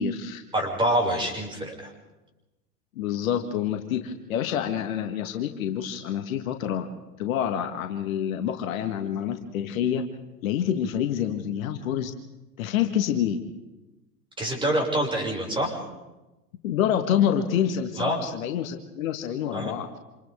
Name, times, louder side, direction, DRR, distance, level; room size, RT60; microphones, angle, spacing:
voice 1, 0.0-0.4 2.9-6.9 7.2-10.0 10.4-12.1 12.6-13.4 16.6-20.0, left 9 dB, 55° left, 6 dB, 1.7 m, -27 dB
voice 2, 0.5-1.9 14.4-15.8 18.0-18.2 19.5-19.7, right 1 dB, 10° right, -1 dB, 6.3 m, -26 dB
28.5 x 27.0 x 3.7 m, 1.0 s
figure-of-eight pair, 100°, 48 cm